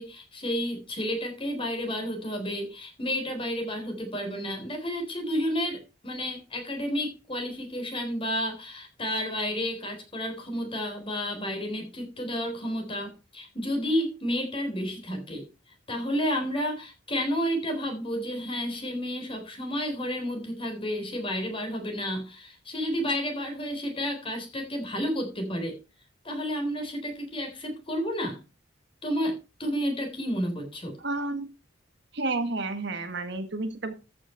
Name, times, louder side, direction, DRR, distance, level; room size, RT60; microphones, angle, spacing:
voice 1, 0.0-15.5 15.9-25.8 26.2-28.4 29.0-31.0, equal, 30° left, 4 dB, 3.8 m, -31 dB
voice 2, 31.0-31.4 32.1-33.9, right 2 dB, 60° right, 8 dB, 1.6 m, -31 dB
14.0 x 6.2 x 4.5 m, 0.29 s
head